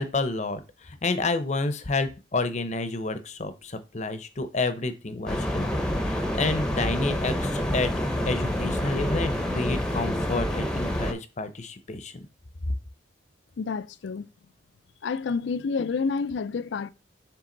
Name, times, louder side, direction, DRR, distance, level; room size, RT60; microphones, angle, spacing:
voice 1, 0.0-7.9 8.2-12.1, left 3 dB, 35° left, 0.7 m, -30 dB
sound 1, 5.3-11.1, equal, 5° left, 0.7 m, -27 dB
voice 2, 13.6-14.3 15.0-16.9, left 5 dB, 70° left, 0.4 m, -29 dB
7.5 x 3.4 x 3.9 m
head